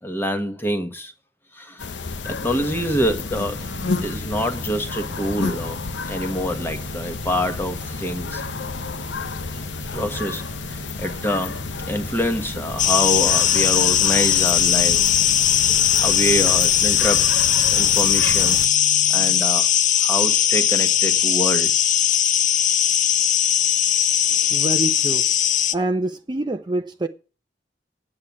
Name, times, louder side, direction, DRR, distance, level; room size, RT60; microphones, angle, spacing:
voice 1, 0.0-1.1 1.6-1.8 2.2-3.6 4.0-5.8 6.1-8.4 9.9-11.6 11.9-15.0 16.0-18.7 19.1-19.7 20.0-21.7, equal, 15° left, 1.4 m, -26 dB
sound 1, 1.8-18.7, left 4 dB, 90° left, 0.9 m, -31 dB
sound 2, 3.5-19.7, right 3 dB, 85° right, 1.0 m, -40 dB
sound 3, 12.8-25.7, left 10 dB, 45° left, 0.6 m, -19 dB
voice 2, 24.5-25.3 25.7-27.1, right 2 dB, 25° right, 0.7 m, -26 dB
8.7 x 8.7 x 9.5 m
head